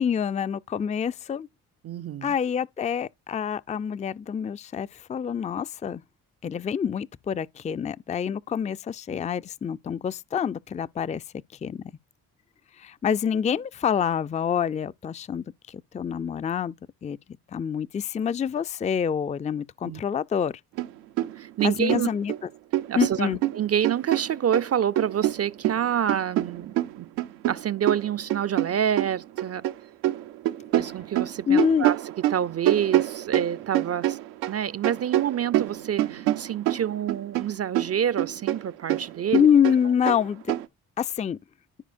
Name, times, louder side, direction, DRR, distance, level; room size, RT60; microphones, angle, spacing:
voice 1, 0.0-1.5 2.2-6.0 6.4-11.2 11.6-11.8 12.8-16.7 17.0-17.2 17.5-20.5 21.6-22.3 23.0-23.4 31.5-31.9 39.3-40.5 41.0-41.4, left 7 dB, 20° left, 0.4 m, -26 dB
voice 2, 1.8-2.3 19.8-20.0 21.4-22.1 22.9-27.1 27.5-29.7 30.8-32.0 32.3-34.2 34.5-39.5, right 9 dB, 40° right, 0.5 m, -27 dB
sound 1, 20.8-20.9 21.2-22.4 22.7-24.7 25.0-29.7 30.0-34.6 34.8-37.5 37.7-40.6, right 14 dB, 85° right, 0.7 m, -26 dB
14.0 x 4.8 x 2.5 m
hypercardioid pair, 45°, 40 cm